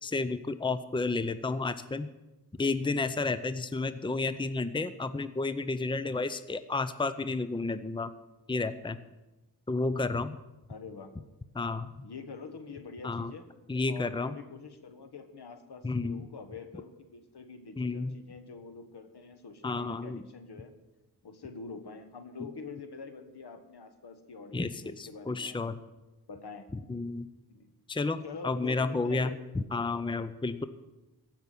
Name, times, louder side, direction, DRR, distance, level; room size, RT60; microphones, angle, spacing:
voice 1, 0.0-2.1 2.6-8.1 8.5-9.0 9.7-10.3 11.5-11.9 13.0-13.3 13.7-14.3 15.8-16.2 17.8-18.2 19.6-20.2 22.4-22.5 24.5-25.8 26.9-27.3 27.9-30.6, left 3 dB, 10° left, 13 dB, 0.6 m, -31 dB
voice 2, 10.7-11.2 12.0-13.5 13.9-20.7 21.2-25.6 26.3-26.7 27.5-27.7 28.2-29.4, left 4 dB, 75° left, 8 dB, 1.5 m, -45 dB
15.5 x 6.0 x 9.6 m, 1.0 s
wide cardioid pair, 70°, 40 cm